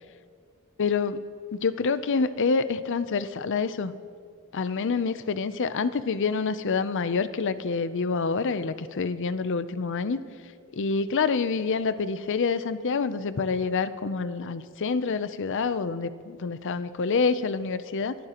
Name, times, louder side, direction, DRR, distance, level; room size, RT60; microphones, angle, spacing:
voice 1, 0.8-1.2 1.5-3.9 4.5-10.2 10.7-18.2, left 4 dB, 55° left, 13 dB, 0.5 m, -27 dB
23.5 x 14.0 x 3.0 m, 2.2 s
head